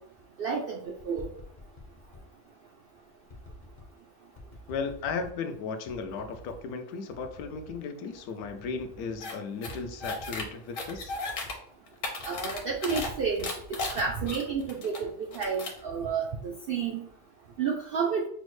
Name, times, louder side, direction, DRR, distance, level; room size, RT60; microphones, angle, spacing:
voice 1, 0.4-0.8 1.0-1.3 12.2-17.1 17.6-18.3, right 5 dB, 85° right, 0 dB, 0.5 m, -30 dB
sound 1, 0.9-2.3 3.3-3.9 4.4-5.4 5.9-6.6 7.1-7.8 8.1-8.2 8.4-9.2 9.7-10.6 10.9-11.6 12.2-15.3 15.7-16.1, left 2 dB, 50° left, 0.5 m, -49 dB
voice 2, 4.7-11.1, left 5 dB, 85° left, 7 dB, 1.1 m, -35 dB
sound 2, 9.2-9.3 9.6-10.4 10.7-11.5 11.9-13.1 13.4-15.0 15.3-15.8, left 3 dB, 65° left, 1.2 m, -35 dB
6.1 x 2.0 x 3.1 m, 0.64 s
omnidirectional pair, 1.5 m